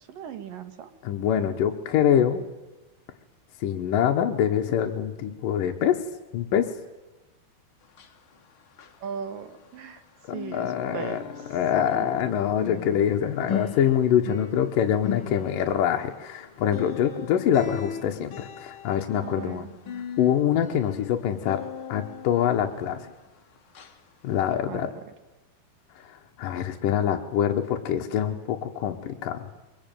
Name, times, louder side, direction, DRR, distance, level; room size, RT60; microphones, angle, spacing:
voice 1, 0.1-0.9 9.0-10.0 10.3-11.6 12.0-12.1 19.2-19.8 24.7-25.1, right 7 dB, 65° right, 10 dB, 3.0 m, -38 dB
voice 2, 1.0-2.4 3.6-6.0 6.3-6.7 10.5-11.2 11.5-19.6 20.2-21.6 21.9-23.0 24.2-24.9 26.4-29.5, left 9 dB, 65° left, 3 dB, 2.7 m, -24 dB
sound 1, 7.8-10.0 10.3-23.4 23.7-24.0 24.5-24.6, left 7 dB, 45° left, 1.8 m, -39 dB
23.0 x 22.5 x 9.1 m, 1.1 s
omnidirectional pair, 4.6 m